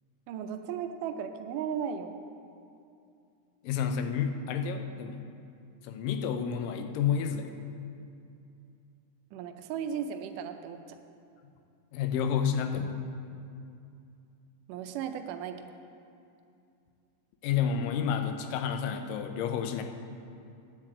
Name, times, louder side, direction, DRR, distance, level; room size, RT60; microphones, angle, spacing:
voice 1, 0.3-2.1 9.3-11.0 14.7-15.7, right 8 dB, 80° right, 7 dB, 2.1 m, -36 dB
voice 2, 3.6-5.2 5.8-7.5 11.9-13.0 17.4-19.8, left 7 dB, 85° left, 6 dB, 2.4 m, -30 dB
9.7 x 7.3 x 7.7 m, 2.5 s
omnidirectional pair, 3.9 m